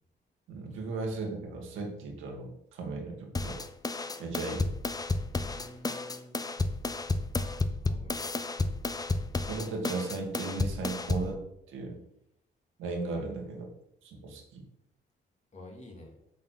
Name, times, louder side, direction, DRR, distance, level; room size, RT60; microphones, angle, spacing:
voice 1, 0.5-3.6 4.2-4.7 9.5-11.4 11.7-12.0 12.8-13.7 14.0-14.6, right 3 dB, 90° right, 1 dB, 2.0 m, -36 dB
sound 1, 3.3-11.3, left 3 dB, 20° left, 0.6 m, -32 dB
voice 2, 5.3-6.4 7.8-8.4 12.8-13.4 15.5-16.1, left 1 dB, 35° left, 0 dB, 2.6 m, -50 dB
7.3 x 4.3 x 6.3 m, 0.80 s
cardioid pair, 90°, 20 cm